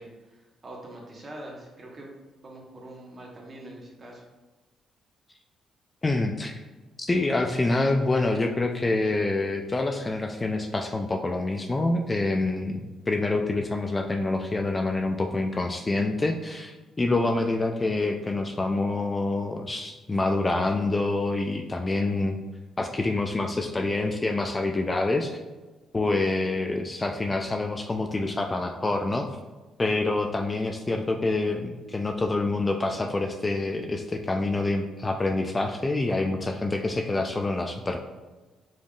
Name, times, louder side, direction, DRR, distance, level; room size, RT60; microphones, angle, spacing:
voice 1, 0.0-2.1 2.4-4.2, right 1 dB, 35° right, -2 dB, 1.2 m, -44 dB
voice 2, 6.0-6.5 7.0-22.4 22.8-25.4 25.9-29.3 29.8-38.0, left 2 dB, 25° left, 4 dB, 0.3 m, -26 dB
5.1 x 3.4 x 2.4 m, 1.2 s
cardioid pair, 90°, 0 cm